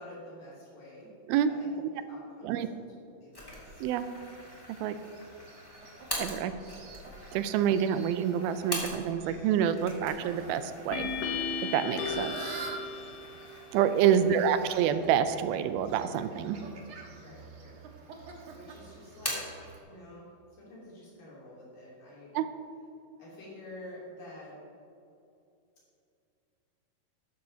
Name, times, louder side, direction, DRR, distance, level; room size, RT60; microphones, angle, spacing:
voice 1, 0.0-1.1 1.4-1.7 1.9-2.8 3.2-3.8 13.0-13.3 14.2-14.6 17.1-17.7 18.5-19.6 19.9-22.4 23.2-24.6, left 1 dB, 65° left, -8 dB, 4.7 m, -49 dB
sound 1, 3.3-9.3 9.7-15.1 15.5-15.6 16.5-17.1 17.5-18.2 18.5-19.6, equal, 10° left, 1.9 m, -43 dB
Fowl, 3.4-19.8, right 3 dB, 60° right, 2.0 m, -48 dB
voice 2, 6.2-6.5 7.3-11.1 11.7-12.3 13.7-16.6 22.3-22.5, right 9 dB, 85° right, 11 dB, 2.4 m, -27 dB
sound 2, 9.2-9.7 10.9-13.7, left 5 dB, 85° left, 3.3 m, -36 dB
14.0 x 12.5 x 2.9 m, 2.6 s
omnidirectional pair, 4.4 m